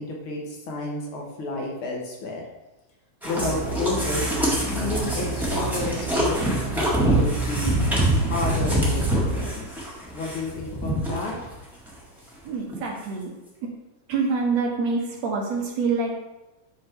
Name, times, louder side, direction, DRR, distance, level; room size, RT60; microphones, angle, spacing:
voice 1, 0.0-2.4 3.2-4.4 4.7-7.8 8.2-11.4, left 2 dB, 65° left, -1 dB, 1.4 m, -31 dB
sound 1, 3.2-11.5 11.9-12.0 12.5-12.6 12.7-12.8, right 1 dB, ahead, 0.7 m, -25 dB
sound 2, 3.4-9.6, right 3 dB, 85° right, 1.7 m, -31 dB
voice 2, 12.4-13.3 13.6-13.7 14.1-16.2, right 4 dB, 65° right, 0 dB, 1.9 m, -26 dB
11.5 x 4.3 x 3.5 m, 1.0 s
omnidirectional pair, 4.0 m